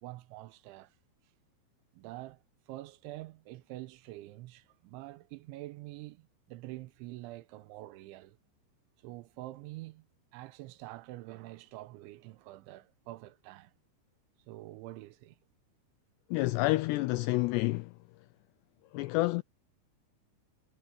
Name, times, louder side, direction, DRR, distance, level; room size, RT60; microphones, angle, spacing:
voice 1, 0.0-0.9 1.9-8.4 9.0-10.0 10.3-13.7 14.5-15.4, right 17 dB, 90° right, 3.2 m, -46 dB
voice 2, 16.3-18.0 18.9-19.4, left 20 dB, 85° left, 2.4 m, -29 dB
omnidirectional pair, 5.4 m